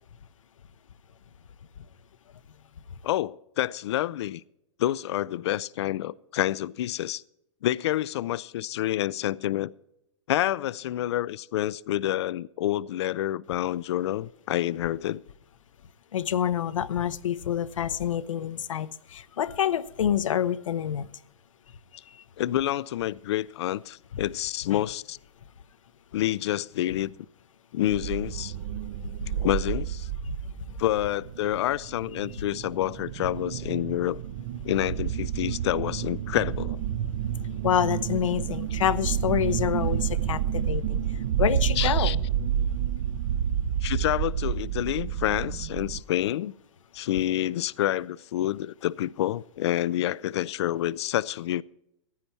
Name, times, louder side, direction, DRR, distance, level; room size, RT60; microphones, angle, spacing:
voice 1, 3.0-4.4 4.8-7.2 7.6-9.7 10.3-15.2 22.4-25.2 26.1-27.1 27.7-28.5 29.4-30.1 30.8-34.2 34.6-36.8 41.8-42.2 43.8-46.5 46.9-51.6, left 13 dB, 60° left, 0.4 m, -28 dB
voice 2, 16.1-21.1 22.1-22.2 24.1-24.2 24.7-24.8 29.2-29.3 30.2-30.4 30.6-30.8 37.6-42.2, left 10 dB, 85° left, 0.8 m, -27 dB
sound 1, 27.9-46.0, right 9 dB, 40° right, 0.6 m, -30 dB
15.5 x 9.6 x 4.4 m
hypercardioid pair, 155°, 16 cm